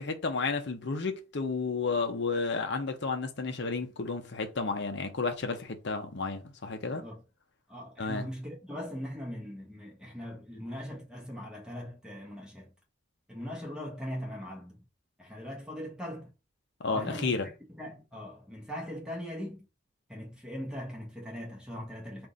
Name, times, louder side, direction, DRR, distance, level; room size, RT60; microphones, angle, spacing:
voice 1, 0.0-7.0 8.0-8.3 16.8-17.5, left 4 dB, 55° left, 0.7 m, -32 dB
voice 2, 6.9-7.2 7.7-12.7 13.3-14.8 15.2-16.3 16.9-17.4 17.8-19.6 20.1-22.3, equal, 5° right, 1.1 m, -40 dB
3.6 x 2.6 x 3.9 m
head